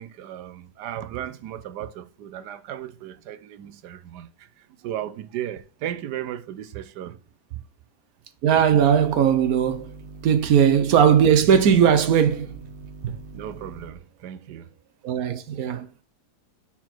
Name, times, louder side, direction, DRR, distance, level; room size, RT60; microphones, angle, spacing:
voice 1, 0.0-4.3 4.8-7.2 7.5-7.6 13.3-14.7, right 11 dB, 85° right, 1.3 m, -35 dB
voice 2, 8.4-9.9 10.2-12.5 15.0-16.0, right 8 dB, 65° right, 1.3 m, -18 dB
sound 1, 8.7-13.9, right 3 dB, 40° right, 1.1 m, -42 dB
5.7 x 4.7 x 5.9 m
omnidirectional pair, 1.7 m